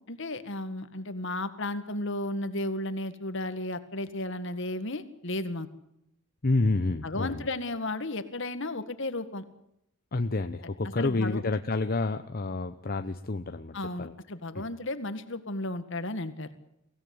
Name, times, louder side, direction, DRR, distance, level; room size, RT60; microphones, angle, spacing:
voice 1, 0.1-5.7 7.0-9.4 11.0-11.4 13.7-16.5, left 2 dB, 65° left, 10 dB, 2.0 m, -34 dB
voice 2, 6.4-7.5 10.1-14.1 14.5-14.7, left 2 dB, 45° left, 8 dB, 0.9 m, -29 dB
24.0 x 17.0 x 9.6 m, 0.79 s
head